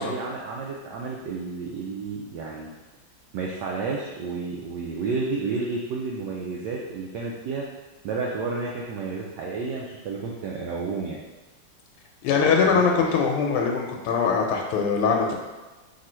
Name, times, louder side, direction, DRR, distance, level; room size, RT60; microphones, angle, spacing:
voice 1, 0.0-2.7 3.3-7.7 8.0-11.2 12.7-12.8, right 4 dB, 85° right, -2 dB, 0.9 m, -31 dB
voice 2, 12.2-15.3, left 5 dB, 90° left, 1 dB, 1.5 m, -22 dB
3.7 x 2.7 x 4.3 m, 1.2 s
omnidirectional pair, 2.4 m